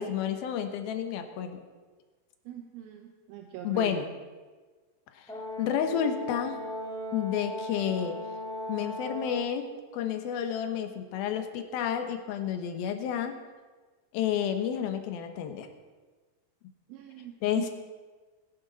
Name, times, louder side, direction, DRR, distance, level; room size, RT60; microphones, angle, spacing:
voice 1, 0.0-1.6 3.6-4.1 5.2-5.3 5.6-6.6 7.1-8.2 8.7-9.7 9.9-13.4 14.1-15.7 17.4-17.6, left 9 dB, 80° left, 6 dB, 2.9 m, -30 dB
voice 2, 2.5-4.1 16.9-17.7, right 9 dB, 80° right, 4 dB, 2.6 m, -41 dB
Brass instrument, 5.3-9.5, equal, 5° left, 0.3 m, -37 dB
21.0 x 10.5 x 4.1 m, 1.4 s
omnidirectional pair, 4.3 m